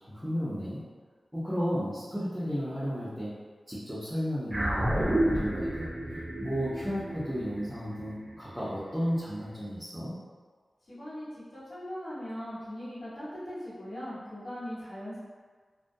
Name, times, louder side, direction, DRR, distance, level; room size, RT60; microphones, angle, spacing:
voice 1, 0.1-0.8 1.3-3.3 3.7-5.9 6.4-10.1, equal, ahead, -11 dB, 0.6 m, -33 dB
sound 1, 4.5-9.1, right 1 dB, 40° right, 0.5 m, -31 dB
voice 2, 10.9-11.3 11.5-15.2, equal, 70° left, -13 dB, 1.2 m, -39 dB
2.4 x 2.2 x 2.5 m, 1.5 s
wide cardioid pair, 70°, 0 cm